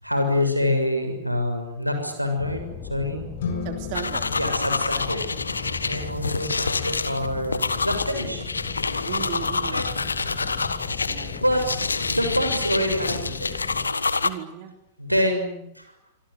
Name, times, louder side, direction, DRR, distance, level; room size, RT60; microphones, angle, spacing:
voice 1, 0.0-3.2 4.3-5.2 5.8-8.4 9.7-9.9 10.2-10.3 11.3-11.6 12.1-13.5 15.0-15.8, left 1 dB, 90° right, 6 dB, 6.8 m, -26 dB
sound 1, 2.4-13.9, left 6 dB, 35° left, 7.9 m, -37 dB
sound 2, 3.4-5.8, left 6 dB, 60° left, 6.7 m, -35 dB
voice 2, 3.6-4.3 9.1-9.9 11.0-11.4 14.2-14.7, right 11 dB, 50° right, 7 dB, 2.9 m, -35 dB
sound 3, 3.9-14.3, left 4 dB, 80° left, 1.5 m, -27 dB
26.5 x 25.5 x 8.2 m, 0.80 s
figure-of-eight pair, 90°, 0 cm